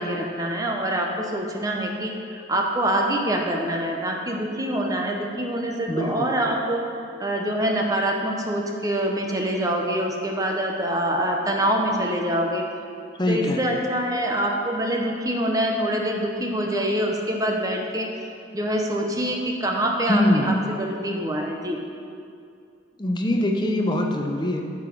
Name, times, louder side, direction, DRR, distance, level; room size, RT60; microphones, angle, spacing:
voice 1, 0.0-6.9 7.2-12.7 13.3-18.1 18.5-21.8, right 1 dB, 20° right, 1 dB, 0.9 m, -25 dB
voice 2, 5.9-6.3 13.2-13.7 20.1-20.5 23.0-24.6, left 1 dB, 25° left, 2 dB, 0.8 m, -23 dB
9.7 x 6.9 x 5.2 m, 2.4 s
head